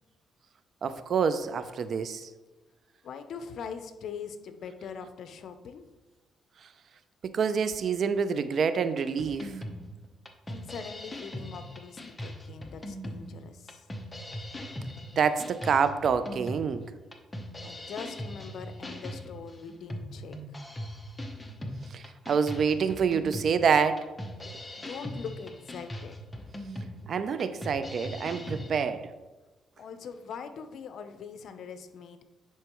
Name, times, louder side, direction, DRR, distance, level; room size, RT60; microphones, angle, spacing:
voice 1, 0.8-2.3 7.2-9.6 15.2-16.8 21.9-24.1 27.1-29.1, right 6 dB, 55° right, 12 dB, 0.4 m, -27 dB
voice 2, 3.0-5.9 10.5-13.9 17.6-20.6 24.8-26.4 29.8-32.2, left 6 dB, 65° left, 9 dB, 0.6 m, -42 dB
sound 1, 9.2-28.7, equal, 15° left, 0.9 m, -40 dB
10.0 x 4.6 x 3.0 m, 1.2 s
cardioid pair, 90°, 0 cm